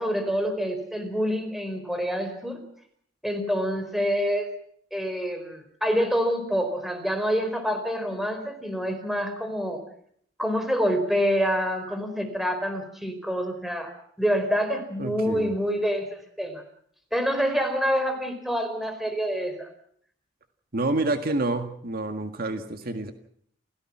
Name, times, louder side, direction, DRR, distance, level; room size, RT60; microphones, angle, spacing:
voice 1, 0.0-2.6 3.2-4.5 4.9-9.8 10.4-13.9 14.2-16.6 17.1-19.7, equal, ahead, 7 dB, 4.4 m, -27 dB
voice 2, 15.0-15.5 20.7-23.1, right 2 dB, 50° right, 7 dB, 1.9 m, -28 dB
29.5 x 17.0 x 6.1 m, 0.65 s
head